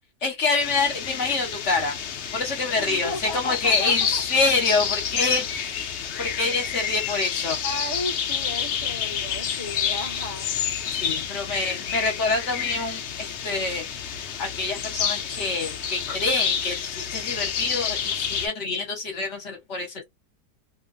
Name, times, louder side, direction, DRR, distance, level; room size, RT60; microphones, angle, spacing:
voice 1, 0.2-1.9 2.3-7.6 11.0-20.0, left 3 dB, 50° left, 1.1 m, -26 dB
sound 1, 0.6-18.5, left 7 dB, 85° left, 0.6 m, -29 dB
voice 2, 2.8-4.2 7.6-10.5, left 2 dB, 35° left, 0.6 m, -34 dB
2.9 x 2.2 x 2.5 m
omnidirectional pair, 1.8 m